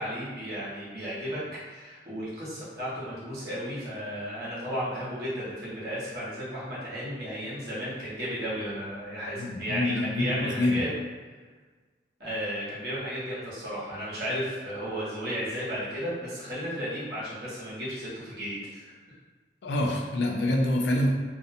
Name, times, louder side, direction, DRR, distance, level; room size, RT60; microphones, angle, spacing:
voice 1, 0.0-1.4 1.7-10.9 12.2-18.9, equal, 60° right, -9 dB, 1.0 m, -34 dB
voice 2, 9.4-10.8 19.6-21.1, left 1 dB, 75° left, -1 dB, 0.4 m, -26 dB
2.5 x 2.1 x 2.6 m, 1.4 s
head